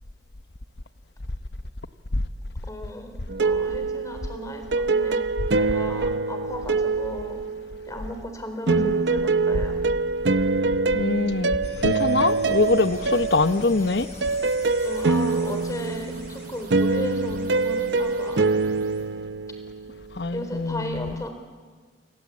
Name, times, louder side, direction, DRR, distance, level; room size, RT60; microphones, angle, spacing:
voice 1, 2.6-5.3 5.6-7.4 7.9-9.8 14.8-18.4 20.3-21.3, equal, 20° left, 6 dB, 4.0 m, -35 dB
sound 1, 3.3-8.0 8.7-19.9, right 3 dB, 85° right, 0.7 m, -25 dB
voice 2, 10.9-14.1 20.1-21.2, left 3 dB, 70° left, 12 dB, 1.0 m, -24 dB
sound 2, 11.6-16.7, left 2 dB, 35° left, 2.7 m, -44 dB
sound 3, 12.3-19.1, right 2 dB, 55° right, 5.9 m, -47 dB
28.5 x 24.5 x 8.6 m, 1.4 s
head